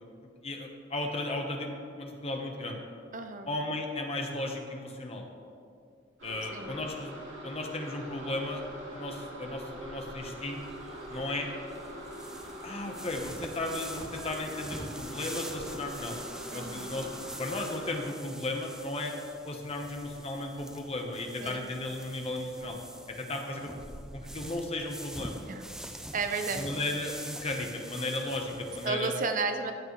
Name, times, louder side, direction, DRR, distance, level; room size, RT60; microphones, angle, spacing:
voice 1, 0.4-1.7 2.0-2.8 3.5-5.3 6.2-7.2 7.4-8.6 8.9-10.6 11.1-11.5 12.6-16.2 16.5-19.1 19.4-22.8 23.1-23.8 24.1-25.4 26.6-29.1, left 2 dB, 30° left, 2 dB, 1.1 m, -35 dB
voice 2, 3.1-3.5 6.5-6.8 16.5-16.9 21.4-21.7 25.5-25.7 26.1-26.7 28.8-29.7, right 4 dB, 45° right, 7 dB, 0.6 m, -33 dB
sound 1, 6.2-18.0, equal, 70° right, 2.7 m, -43 dB
sound 2, 10.2-28.9, right 1 dB, 5° right, 0.4 m, -45 dB
14.0 x 9.0 x 3.2 m, 2.3 s
head